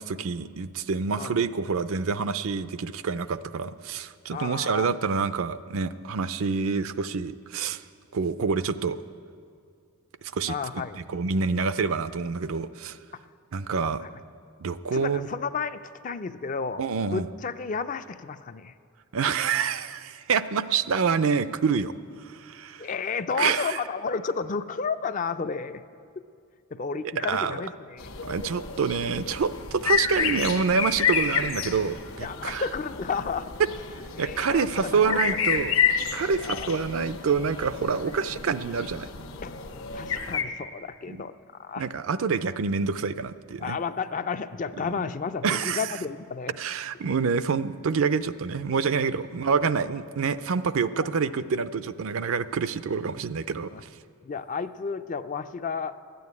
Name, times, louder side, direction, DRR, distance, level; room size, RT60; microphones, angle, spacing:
voice 1, 0.0-7.8 8.1-9.0 10.3-10.8 11.1-13.0 13.5-14.0 14.6-15.3 16.8-17.3 19.1-21.9 22.2-22.9 23.4-23.8 27.2-27.6 28.2-32.6 34.2-35.8 36.1-39.1 41.1-41.2 41.8-43.8 45.4-45.9 46.6-53.9, right 5 dB, 70° right, 13 dB, 0.5 m, -27 dB
voice 2, 4.3-4.9 10.5-11.0 13.7-14.1 14.9-16.8 17.1-18.7 22.8-25.8 26.7-28.1 32.2-33.5 34.1-35.5 36.4-36.7 39.4-41.3 41.6-41.9 43.6-46.5 51.0-51.1 53.7-53.8 54.2-55.9, left 5 dB, 35° left, 11 dB, 0.4 m, -32 dB
sound 1, 28.0-40.4, left 7 dB, 70° left, 1.1 m, -30 dB
13.0 x 9.3 x 9.5 m, 2.3 s
head